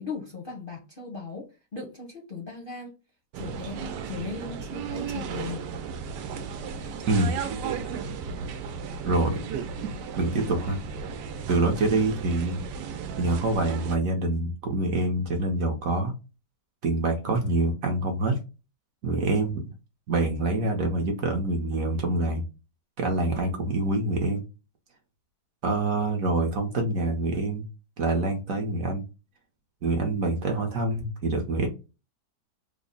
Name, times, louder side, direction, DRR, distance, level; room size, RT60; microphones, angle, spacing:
voice 1, 0.0-2.9 3.3-5.7 11.6-11.7, left 4 dB, 50° left, -1 dB, 0.6 m, -38 dB
sound 1, 3.3-14.0, right 6 dB, 85° right, 1.2 m, -35 dB
voice 2, 9.0-9.4 10.2-10.8 11.5-12.6 13.2-16.1 16.8-18.4 19.0-19.7 20.1-22.4 23.0-24.4 25.6-27.6 28.0-29.0 29.8-31.7, right 2 dB, 60° right, 3 dB, 1.0 m, -26 dB
3.5 x 2.0 x 3.8 m, 0.29 s
omnidirectional pair, 1.8 m